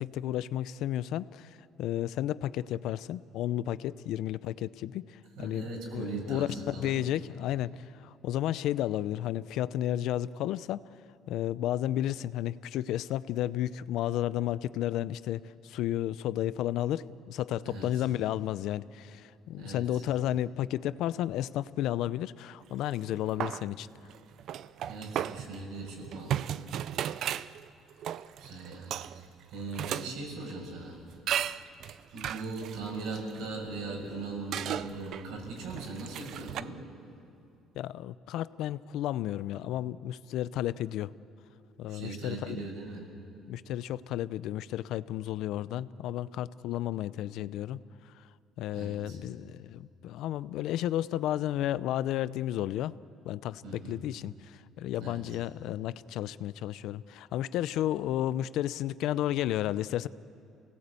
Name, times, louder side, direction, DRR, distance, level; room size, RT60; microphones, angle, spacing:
voice 1, 0.0-10.8 11.3-23.9 37.8-41.1 41.8-42.6 43.5-47.8 48.6-52.9 53.2-60.1, left 12 dB, 75° left, 17 dB, 0.5 m, -32 dB
voice 2, 5.4-7.0 17.6-18.0 19.6-20.0 24.9-26.7 27.1-27.3 28.4-31.0 32.1-36.8 41.9-43.0 48.7-49.2 53.6-54.0 55.0-55.2, right 3 dB, 80° right, 1 dB, 6.7 m, -40 dB
sound 1, 22.7-23.1 23.4-30.1 30.5-30.6 31.3-34.1 34.5-36.6, right 10 dB, 60° right, 0.5 m, -35 dB
26.5 x 18.5 x 8.3 m, 2.6 s
cardioid pair, 115°, 0 cm